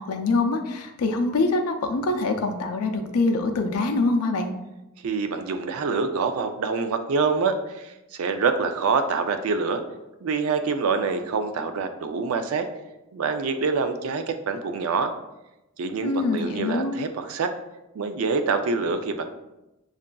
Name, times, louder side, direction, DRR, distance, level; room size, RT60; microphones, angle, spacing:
voice 1, 0.0-4.5 16.0-17.0, left 3 dB, 80° left, 4 dB, 0.5 m, -24 dB
voice 2, 5.0-9.8 10.2-12.7 13.1-15.1 15.8-17.5 17.9-19.2, right 4 dB, 65° right, 8 dB, 0.4 m, -26 dB
6.5 x 2.4 x 2.2 m, 0.96 s
head